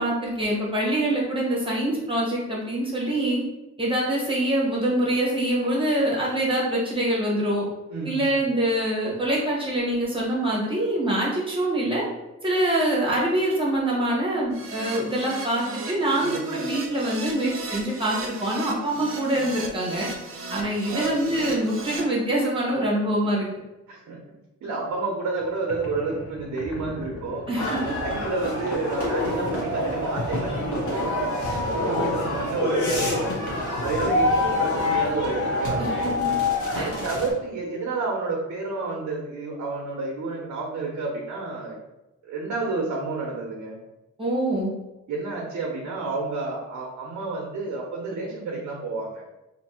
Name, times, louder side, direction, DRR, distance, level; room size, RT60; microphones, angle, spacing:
voice 1, 0.0-3.4 3.8-7.7 8.0-12.0 12.4-20.1 20.5-23.5 27.5-27.9 35.8-36.4 36.7-36.9 44.2-44.7, right 1 dB, 20° right, -5 dB, 1.0 m, -25 dB
voice 2, 7.9-8.3 16.2-17.0 17.3-17.4 20.9-21.5 23.9-24.2 24.6-31.2 31.7-33.3 33.8-36.0 36.7-41.8 42.2-43.8 45.1-49.2, right 3 dB, 90° right, -1 dB, 0.8 m, -30 dB
Keyboard (musical), 14.5-22.0, right 3 dB, 50° right, 0.7 m, -36 dB
sound 1, 25.4-25.5 25.7-36.3, left 2 dB, 60° left, 0.7 m, -34 dB
sound 2, 27.5-37.3, left 2 dB, 80° left, 1.2 m, -27 dB
2.8 x 2.6 x 4.2 m, 0.98 s
wide cardioid pair, 155°, 29 cm